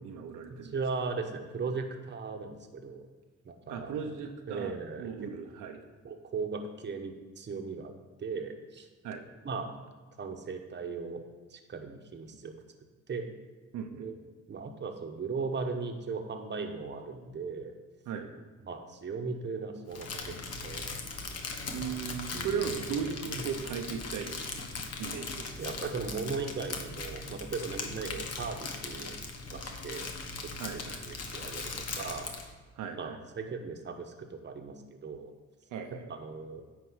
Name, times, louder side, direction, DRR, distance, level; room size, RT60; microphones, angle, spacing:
voice 1, 0.0-0.7 3.7-5.8 9.0-9.2 13.7-14.1 18.1-18.3 21.7-24.4 24.7-25.5 30.6-31.0 32.7-33.2 35.7-36.1, right 7 dB, 90° right, 4 dB, 0.9 m, -37 dB
voice 2, 0.7-3.1 3.4-3.9 4.5-5.1 6.0-7.9 8.2-8.9 9.4-9.7 10.2-11.2 11.5-12.5 13.1-13.2 14.0-14.1 14.5-17.7 18.7-20.3 20.6-20.9 22.3-22.5 23.4-23.5 25.6-29.2 29.5-30.1 31.1-32.3 33.0-35.3 36.2-36.6, right 4 dB, 35° right, 4 dB, 1.1 m, -37 dB
Crumpling crinkling, 19.9-32.5, left 4 dB, 55° left, 1.3 m, -39 dB
9.7 x 4.6 x 6.2 m, 1.3 s
cardioid pair, 90°, 30 cm